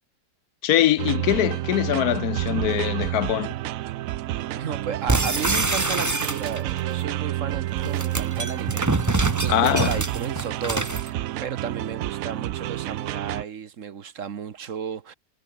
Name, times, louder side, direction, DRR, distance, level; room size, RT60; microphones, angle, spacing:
voice 1, 0.6-3.5 9.5-10.0, left 13 dB, 70° left, 0.9 m, -22 dB
sound 1, 1.0-13.4, right 14 dB, 75° right, 0.8 m, -29 dB
voice 2, 4.6-15.1, right 7 dB, 50° right, 1.2 m, -34 dB
sound 2, 5.1-6.8 7.8-11.1, right 2 dB, 15° right, 0.7 m, -25 dB
omnidirectional pair, 2.0 m